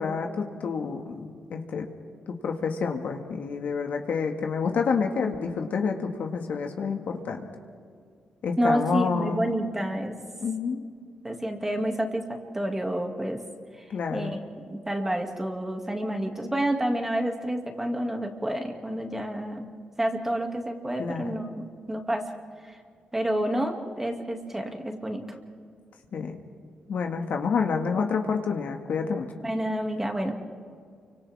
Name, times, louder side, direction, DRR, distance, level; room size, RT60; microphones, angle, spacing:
voice 1, 0.0-1.9 2.3-7.4 8.4-9.5 10.4-10.8 13.9-14.3 21.0-21.3 26.1-26.4 26.9-29.3, left 5 dB, 70° left, 3 dB, 1.9 m, -28 dB
voice 2, 8.6-10.1 11.2-13.4 13.8-13.9 14.1-19.7 20.0-22.2 22.7-22.8 23.1-25.2 29.4-30.3, right 1 dB, 10° right, 3 dB, 2.4 m, -29 dB
29.0 x 25.0 x 3.7 m, 2.1 s
cardioid pair, 90°, 3 cm